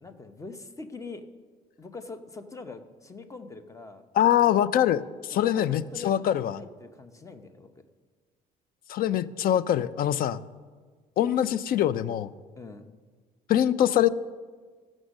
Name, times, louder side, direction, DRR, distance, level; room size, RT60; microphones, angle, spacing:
voice 1, 0.0-1.2 1.8-4.0 4.4-4.5 5.3-7.8 12.6-12.9, left 3 dB, 20° left, 9 dB, 0.8 m, -43 dB
voice 2, 4.2-6.6 8.9-10.4 11.2-12.3 13.5-14.1, left 11 dB, 60° left, 17 dB, 0.5 m, -23 dB
14.5 x 6.2 x 6.4 m, 1.5 s
cardioid pair, 110°, 17 cm